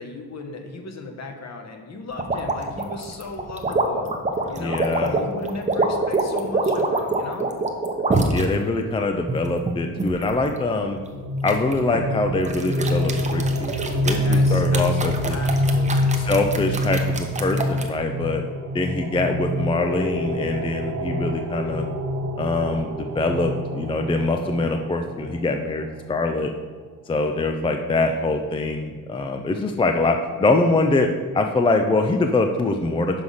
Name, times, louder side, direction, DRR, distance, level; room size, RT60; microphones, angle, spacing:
voice 1, 0.0-4.1 4.5-7.5 14.1-16.2, left 3 dB, 40° left, 4 dB, 1.1 m, -36 dB
sound 1, 2.2-8.4 9.0-10.3 11.5-12.0 12.4-17.9, right 3 dB, 20° right, 0.7 m, -25 dB
voice 2, 4.6-5.1 8.3-11.0 11.4-15.4 16.1-18.4 18.7-21.8 22.4-26.5 27.1-33.2, left 2 dB, 15° left, 5 dB, 0.3 m, -23 dB
sound 2, 11.0-25.5, left 1 dB, 60° right, 1.1 m, -26 dB
6.1 x 4.8 x 5.5 m, 1.5 s
cardioid pair, 110°, 39 cm